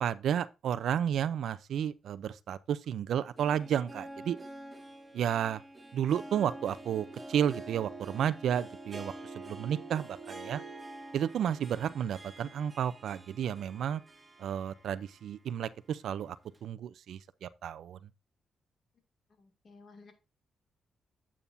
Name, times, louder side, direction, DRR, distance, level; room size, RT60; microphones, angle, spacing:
voice 1, 0.0-4.4 5.1-5.6 5.9-10.6 11.1-14.0 14.4-16.4 16.6-18.1, right 9 dB, 75° right, 0.5 m, -32 dB
Harp, 3.1-15.2 15.6-15.7 16.5-16.6, right 2 dB, 20° right, 1.7 m, -47 dB
voice 2, 19.3-20.1, left 3 dB, 45° left, 2.5 m, -55 dB
9.2 x 8.5 x 2.7 m
cardioid pair, 110°, 0 cm